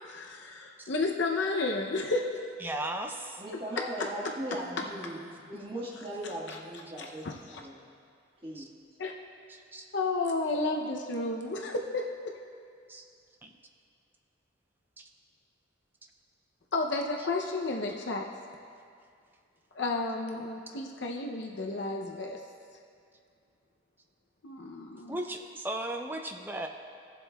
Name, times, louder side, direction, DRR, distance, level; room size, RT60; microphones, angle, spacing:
voice 1, 0.1-2.4 3.8-3.9 6.5-6.6 7.0-7.6 9.0-9.1 9.9-12.3 16.7-18.3 19.8-22.4 24.4-25.2, left 3 dB, 60° left, 1 dB, 0.6 m, -32 dB
voice 2, 2.6-3.4 6.9-7.0 8.5-8.6 9.5-9.9 12.9-13.0 13.4-13.5 15.0-15.1 25.1-26.7, right 1 dB, 10° right, 4 dB, 0.4 m, -36 dB
voice 3, 3.4-5.2 5.5-7.8 8.4-8.7, right 1 dB, 30° right, -5 dB, 1.6 m, -38 dB
16.5 x 7.5 x 2.3 m, 2.3 s
head